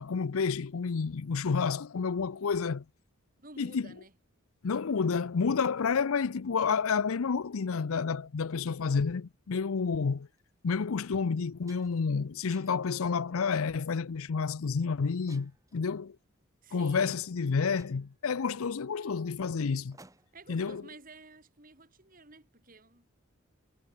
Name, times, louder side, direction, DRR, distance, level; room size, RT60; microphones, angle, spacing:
voice 1, 0.0-2.8 3.6-3.9 4.6-10.3 10.6-16.2 16.7-20.0 20.5-20.8, left 5 dB, 80° left, 0.5 m, -30 dB
voice 2, 3.4-4.1 16.6-17.2 20.3-23.1, right 2 dB, 40° right, 3.2 m, -52 dB
sound 1, 10.2-10.4 11.0-11.1 11.4-12.1 12.5-13.0 13.6-13.9 15.3-15.8 16.9-17.0 17.4-17.5 17.8-20.5, right 2 dB, 15° right, 1.9 m, -60 dB
head